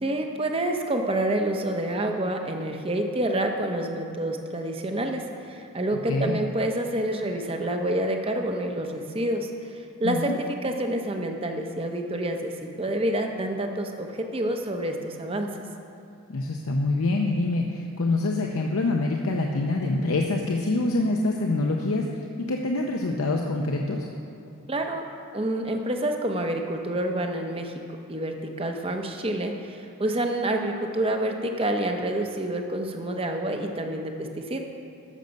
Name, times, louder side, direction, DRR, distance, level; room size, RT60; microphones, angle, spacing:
voice 1, 0.0-10.3 10.6-15.5 24.7-25.0 25.3-27.7 28.1-34.6, right 1 dB, 25° right, 4 dB, 0.7 m, -28 dB
voice 2, 10.0-10.4 16.3-22.1 22.5-24.1, left 2 dB, 75° left, 1 dB, 0.7 m, -25 dB
13.5 x 6.7 x 5.2 m, 2.5 s
head